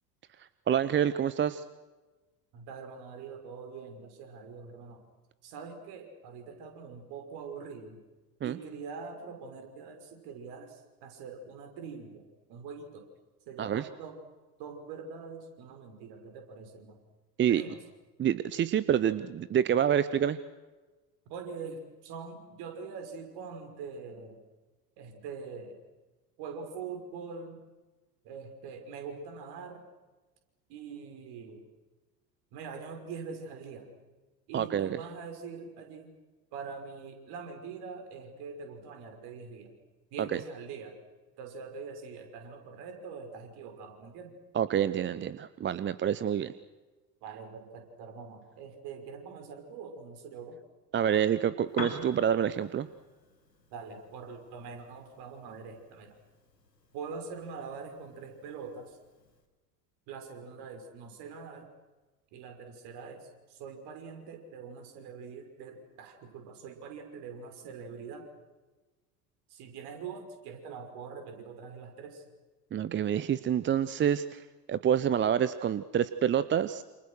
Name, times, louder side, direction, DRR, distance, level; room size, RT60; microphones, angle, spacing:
voice 1, 0.4-1.6 8.4-8.5 13.6-13.8 17.4-17.6 18.2-20.4 34.5-35.0 44.5-46.5 50.9-52.9 72.7-76.8, right 9 dB, 25° right, 15 dB, 0.9 m, -27 dB
voice 2, 2.5-5.1 5.4-8.0 8.4-12.2 12.5-13.0 13.5-14.2 14.6-17.0 17.5-17.8 21.3-24.4 25.0-25.8 26.4-27.6 28.2-29.9 30.7-31.7 32.5-33.9 34.5-36.1 36.5-39.7 40.1-41.0 41.4-44.4 47.2-50.6 53.7-56.2 56.9-59.0 60.1-61.7 62.3-68.3 69.5-72.2, right 5 dB, 50° right, 5 dB, 5.8 m, -43 dB
Piano, 51.6-59.5, left 3 dB, 80° left, 3.0 m, -48 dB
28.5 x 28.5 x 6.5 m, 1.2 s
figure-of-eight pair, 70°, 48 cm